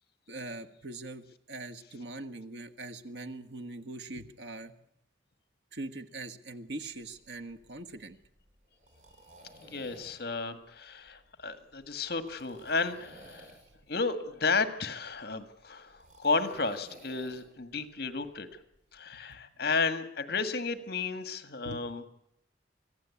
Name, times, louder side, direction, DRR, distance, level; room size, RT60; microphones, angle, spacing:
voice 1, 0.3-4.7 5.7-8.2 19.1-19.4 21.6-22.1, right 2 dB, 70° right, 6 dB, 1.6 m, -42 dB
sound 1, 6.9-19.0, equal, 45° right, 5.4 m, -56 dB
voice 2, 9.6-13.5 13.9-18.5 18.9-22.0, left 4 dB, 60° left, 9 dB, 1.8 m, -33 dB
24.5 x 15.5 x 8.4 m, 0.78 s
head